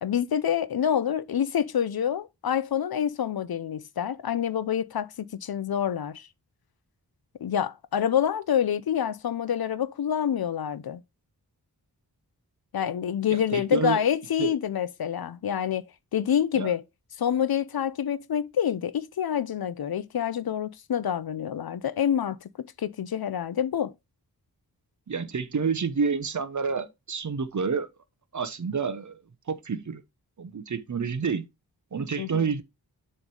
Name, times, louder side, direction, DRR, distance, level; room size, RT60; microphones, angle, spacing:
voice 1, 0.0-6.3 7.4-11.0 12.7-15.9 16.1-16.8 17.2-22.5 22.8-23.9 32.2-32.5, left 9 dB, 65° left, 0.6 m, -27 dB
voice 2, 13.3-14.0 14.4-14.5 16.5-16.7 25.1-27.9 28.3-29.2 29.5-30.0 30.4-31.4 31.9-32.6, right 5 dB, 50° right, 0.8 m, -29 dB
7.2 x 3.2 x 5.3 m
wide cardioid pair, 95°, 39 cm